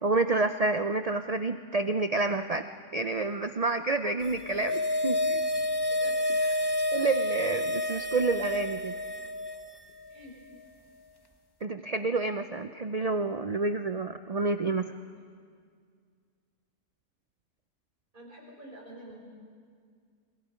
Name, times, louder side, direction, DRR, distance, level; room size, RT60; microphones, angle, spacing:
voice 1, 0.0-2.7 2.9-5.4 6.9-9.0 11.6-14.9, right 3 dB, 75° right, 9 dB, 0.3 m, -29 dB
sound 1, 4.3-9.8 10.1-10.2, left 1 dB, 20° left, 0.8 m, -29 dB
voice 2, 5.9-6.6 10.1-10.3 15.1-15.2 18.1-19.2, right 1 dB, 35° right, -3 dB, 5.8 m, -48 dB
28.0 x 22.5 x 5.1 m, 2.1 s
omnidirectional pair, 1.5 m